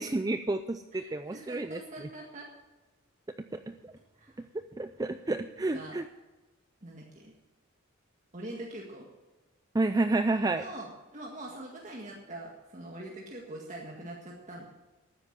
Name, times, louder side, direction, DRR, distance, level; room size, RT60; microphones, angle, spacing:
voice 1, 0.0-2.1 3.5-3.9 4.5-6.1 9.7-10.7, right 2 dB, 15° right, 9 dB, 0.4 m, -30 dB
voice 2, 0.9-2.5 4.2-4.4 5.7-6.0 6.8-7.3 8.3-9.1 10.5-14.7, right 1 dB, 35° right, -2 dB, 1.8 m, -43 dB
13.0 x 9.8 x 7.5 m, 1.1 s
head